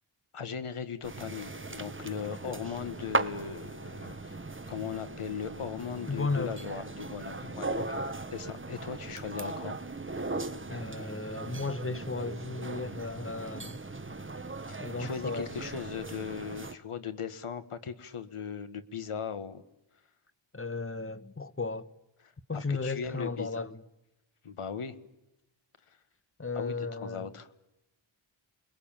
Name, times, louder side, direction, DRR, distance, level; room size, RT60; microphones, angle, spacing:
voice 1, 0.3-4.4 4.7-7.7 8.3-9.8 15.0-19.6 22.5-23.6 24.4-25.0 25.9-26.0 26.5-27.5, left 6 dB, 90° left, 1.8 m, -38 dB
sound 1, 1.0-16.7, right 3 dB, 25° right, 1.5 m, -38 dB
voice 2, 6.1-6.6 7.4-8.0 10.7-13.8 14.8-15.7 20.5-21.9 22.5-23.8 26.4-27.3, left 3 dB, 25° left, 1.4 m, -35 dB
29.0 x 21.5 x 9.0 m
wide cardioid pair, 75°, 49 cm